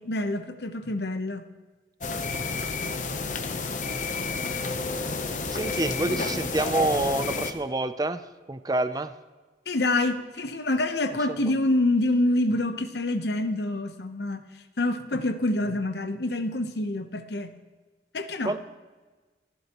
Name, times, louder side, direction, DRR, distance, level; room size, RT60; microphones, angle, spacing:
voice 1, 0.0-1.5 9.7-14.4 14.8-17.5 18.1-18.6, left 2 dB, 70° left, 9 dB, 0.9 m, -26 dB
sound 1, 2.0-7.5, left 3 dB, 45° left, 0.8 m, -30 dB
voice 2, 5.5-8.2 8.5-9.1 11.3-11.4 18.4-18.6, right 2 dB, 20° right, 11 dB, 0.5 m, -27 dB
26.5 x 11.0 x 3.0 m, 1.3 s
head